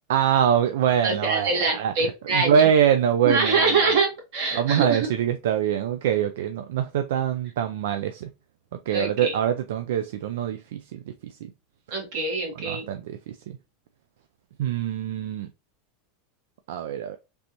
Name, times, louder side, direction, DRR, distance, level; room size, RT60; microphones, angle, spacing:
voice 1, 0.1-1.9 2.3-3.7 4.5-8.3 8.9-11.3 12.6-13.4 14.6-15.5 16.7-17.2, right 9 dB, 80° right, 0.3 m, -24 dB
voice 2, 1.0-2.7 3.2-5.1 8.9-9.3 11.9-12.9, right 4 dB, 55° right, 1.6 m, -24 dB
3.3 x 2.6 x 2.9 m
supercardioid pair, 155°, 0 cm